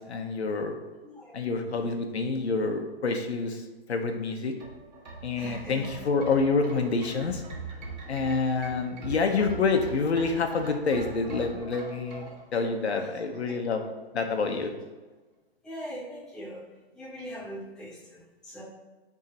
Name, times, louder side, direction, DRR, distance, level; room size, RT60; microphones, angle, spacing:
voice 1, 0.1-0.7 1.3-3.6 3.9-4.5 5.2-7.4 8.1-13.8 14.1-14.7, left 4 dB, 85° left, 4 dB, 1.1 m, -27 dB
voice 2, 1.0-1.3 1.7-1.9 5.3-5.9 12.2-13.2 15.6-16.6 16.9-18.6, equal, ahead, -9 dB, 1.0 m, -42 dB
sound 1, 4.5-13.4 13.7-13.8, right 3 dB, 45° right, 1.4 m, -42 dB
11.0 x 3.7 x 2.9 m, 1.2 s
hypercardioid pair, 165°, 32 cm